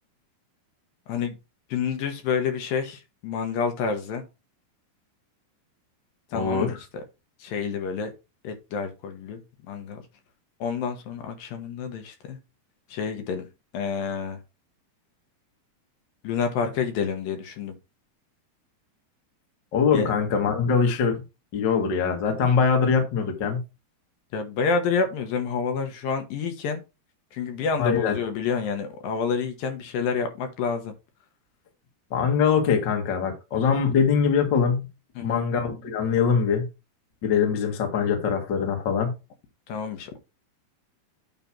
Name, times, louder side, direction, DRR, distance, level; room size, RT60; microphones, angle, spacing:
voice 1, 1.7-4.2 6.3-6.8 7.4-8.1 8.4-9.4 9.7-10.0 10.6-12.4 12.9-13.5 13.7-14.4 16.2-17.8 19.9-20.1 24.3-26.8 27.3-30.9 35.2-35.4 39.7-40.2, left 5 dB, 70° left, 2.8 m, -28 dB
voice 2, 6.3-6.8 19.7-21.2 21.5-23.6 27.8-28.1 32.1-34.9 35.2-36.6 37.2-39.1, left 6 dB, 45° left, 1.6 m, -23 dB
9.2 x 3.4 x 5.8 m
omnidirectional pair, 4.5 m